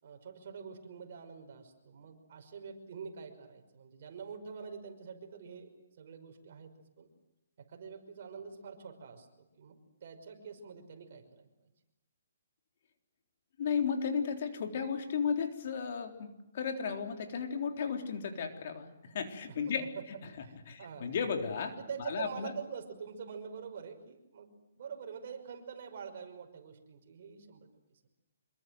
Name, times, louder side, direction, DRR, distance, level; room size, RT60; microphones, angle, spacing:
voice 1, 0.0-5.7 6.0-7.1 7.6-11.5 19.7-20.0 20.4-21.1 21.7-28.0, right 6 dB, 50° right, 5 dB, 5.7 m, -46 dB
voice 2, 13.6-19.9 20.7-22.5, left 6 dB, 50° left, 5 dB, 3.7 m, -34 dB
26.0 x 23.0 x 7.9 m, 0.90 s
hypercardioid pair, 165°, 0 cm